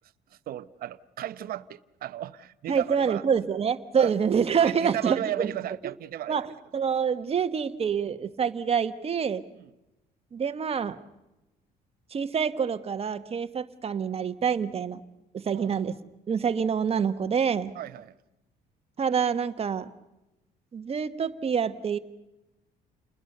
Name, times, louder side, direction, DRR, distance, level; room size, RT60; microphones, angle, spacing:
voice 1, 0.3-3.2 4.0-4.1 4.5-6.5 9.6-9.7 15.5-15.7 17.7-18.1, right 13 dB, 60° right, 0.9 m, -35 dB
voice 2, 2.7-5.5 6.3-6.4 6.7-9.4 10.3-11.0 12.1-15.0 15.3-15.9 16.3-17.7 19.0-19.9 20.7-22.0, right 7 dB, 35° right, 1.4 m, -26 dB
29.0 x 20.5 x 6.8 m
cardioid pair, 110°, 17 cm